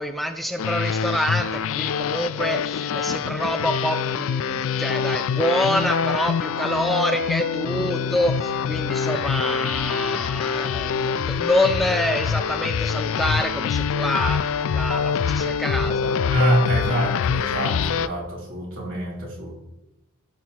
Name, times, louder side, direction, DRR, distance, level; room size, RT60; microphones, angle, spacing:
voice 1, 0.0-16.2, equal, ahead, 5 dB, 0.4 m, -26 dB
sound 1, 0.6-18.1, left 6 dB, 65° left, 0.4 m, -25 dB
voice 2, 16.3-19.5, right 1 dB, 65° right, -4 dB, 3.1 m, -25 dB
15.0 x 6.1 x 2.9 m, 0.92 s
head